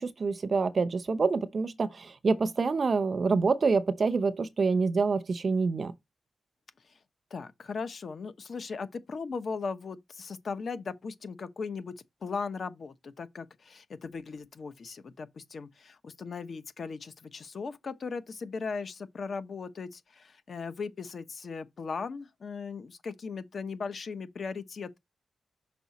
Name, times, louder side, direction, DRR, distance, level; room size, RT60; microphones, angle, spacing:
voice 1, 0.0-5.9, right 4 dB, 40° right, 0.6 m, -27 dB
voice 2, 7.3-11.9 12.2-25.0, left 5 dB, 50° left, 0.8 m, -38 dB
6.0 x 4.7 x 4.1 m
wide cardioid pair, 130°, 0 cm